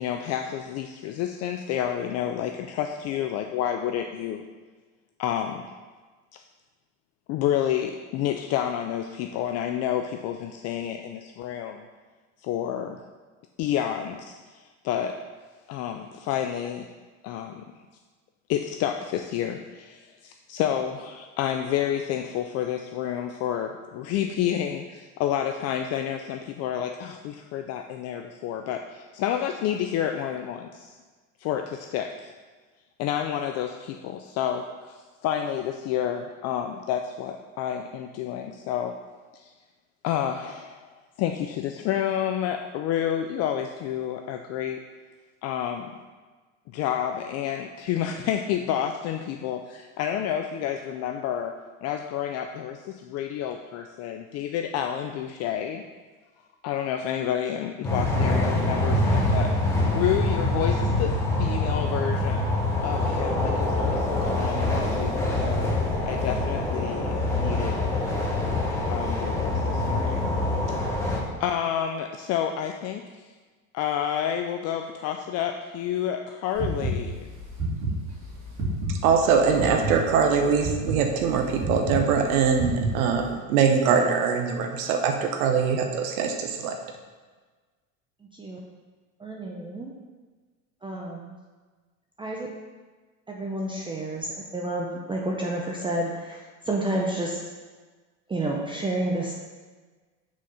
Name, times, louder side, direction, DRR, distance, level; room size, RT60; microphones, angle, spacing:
voice 1, 0.0-4.4 5.2-5.7 7.3-11.9 12.4-13.0 13.6-15.2 15.7-16.9 17.2-17.6 18.5-30.9 31.4-32.3 33.0-38.9 39.3-39.5 40.0-40.8 41.2-44.8 45.4-45.9 46.7-55.8 56.6-59.5 59.9-62.5 62.8-65.6 66.0-67.8 68.9-70.3 71.0-73.2 73.7-77.3, left 10 dB, 40° left, 5 dB, 0.4 m, -29 dB
sound 1, 57.8-71.2, left 2 dB, 5° left, 1.4 m, -25 dB
sound 2, 76.5-83.3, right 1 dB, 40° right, 2.2 m, -30 dB
voice 2, 78.9-86.8, right 6 dB, 85° right, 4 dB, 1.0 m, -23 dB
voice 3, 89.2-89.9 90.8-91.3 92.2-92.5 93.3-96.4 96.7-97.4 98.3-99.3, right 1 dB, 10° right, -1 dB, 0.6 m, -30 dB
6.2 x 4.3 x 5.5 m, 1.4 s
supercardioid pair, 120°, 42 cm